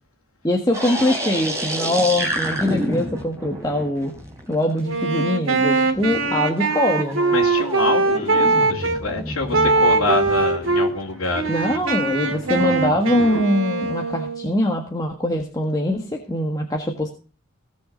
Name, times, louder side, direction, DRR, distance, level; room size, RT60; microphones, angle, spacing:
voice 1, 0.4-4.1 4.5-7.4 11.5-17.1, left 1 dB, 15° left, 1 dB, 1.6 m, -22 dB
sound 1, 0.7-5.0 5.8-13.4, right 1 dB, 15° right, 3.4 m, -31 dB
Wind instrument woodwind instrument, 4.8-9.0 9.5-10.9 11.3-14.5, right 3 dB, 75° right, 2.4 m, -21 dB
voice 2, 7.3-11.8, left 2 dB, 85° left, -3 dB, 2.3 m, -26 dB
17.5 x 6.6 x 5.3 m, 0.36 s
head